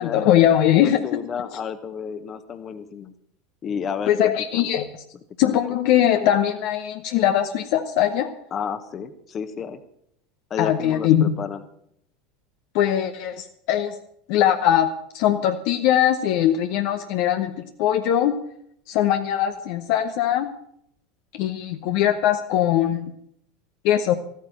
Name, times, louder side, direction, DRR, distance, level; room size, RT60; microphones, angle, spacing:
voice 1, 0.0-1.0 4.1-4.9 5.4-8.3 10.6-11.4 12.7-14.0 14.3-14.9 15.1-17.5 17.8-18.3 18.9-20.5 21.3-23.1 23.8-24.2, left 11 dB, 55° left, 6 dB, 1.0 m, -21 dB
voice 2, 0.8-3.1 3.6-4.7 5.4-5.6 8.5-9.8 10.5-11.6, left 7 dB, 35° left, 11 dB, 1.3 m, -31 dB
14.5 x 9.4 x 7.7 m, 0.70 s
figure-of-eight pair, 80°, 0 cm